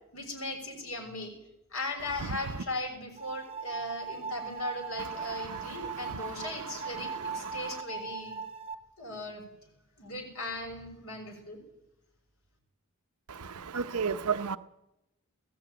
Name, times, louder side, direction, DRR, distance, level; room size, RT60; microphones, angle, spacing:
voice 1, 0.1-1.3 1.7-8.4 9.0-9.4 10.0-11.6, left 2 dB, 65° left, 3 dB, 6.3 m, -38 dB
sound 1, 3.2-8.7, right 5 dB, 25° right, 1.0 m, -39 dB
voice 2, 7.0-7.6 13.3-14.6, right 6 dB, 90° right, 10 dB, 0.8 m, -33 dB
20.0 x 15.5 x 9.2 m, 0.89 s
head